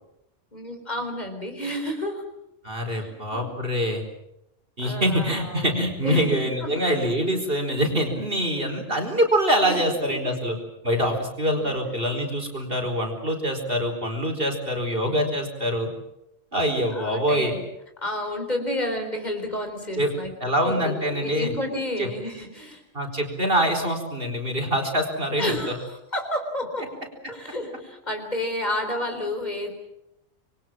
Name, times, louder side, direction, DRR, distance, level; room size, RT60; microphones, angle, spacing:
voice 1, 0.5-2.2 2.9-3.6 4.8-6.9 9.6-9.8 10.1-10.2 11.4-11.9 16.9-17.6 18.0-20.3 20.6-22.8 25.4-26.9 27.3-29.7, left 1 dB, 35° left, 4 dB, 4.3 m, -31 dB
voice 2, 2.6-4.0 4.8-10.6 10.8-15.9 16.5-17.5 20.0-20.1 20.4-21.5 22.0-22.1 22.9-25.7, equal, 45° right, 3 dB, 4.7 m, -24 dB
27.0 x 22.5 x 7.5 m, 0.83 s
omnidirectional pair, 1.3 m